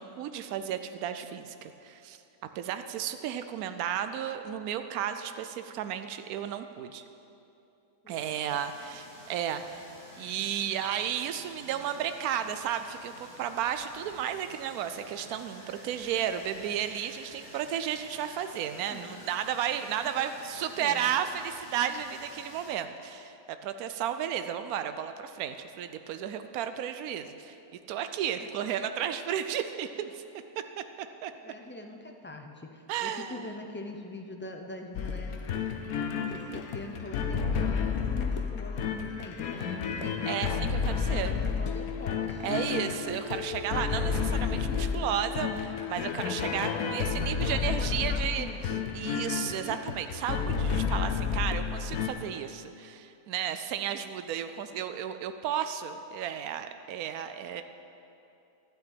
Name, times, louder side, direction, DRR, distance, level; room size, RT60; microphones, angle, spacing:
voice 1, 0.0-2.2 2.5-7.0 8.1-27.6 27.9-30.2 30.8-31.3 32.9-33.5 40.3-41.4 42.4-48.5 48.9-57.6, right 9 dB, 85° right, 9 dB, 1.1 m, -33 dB
sound 1, 8.1-22.7, left 1 dB, 45° left, 3.1 m, -51 dB
voice 2, 18.8-19.4 20.2-20.3 20.6-21.1 31.4-35.4 36.0-40.3 41.1-42.5 46.7-48.9, left 2 dB, 15° left, 3 dB, 0.4 m, -44 dB
sound 2, 34.9-52.1, left 6 dB, 90° left, 1.3 m, -31 dB
12.5 x 5.9 x 8.7 m, 2.8 s
omnidirectional pair, 1.5 m